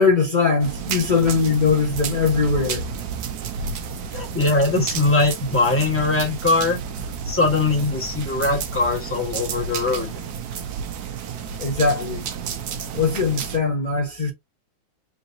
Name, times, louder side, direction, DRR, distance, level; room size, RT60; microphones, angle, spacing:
voice 1, 0.0-2.9 11.6-12.3 12.9-14.3, left 4 dB, 30° left, 1.0 m, -20 dB
sound 1, 0.6-13.6, right 6 dB, 70° right, 1.2 m, -31 dB
voice 2, 4.1-6.8 7.3-10.2, left 3 dB, 10° left, 1.3 m, -21 dB
3.8 x 3.8 x 2.7 m
omnidirectional pair, 2.0 m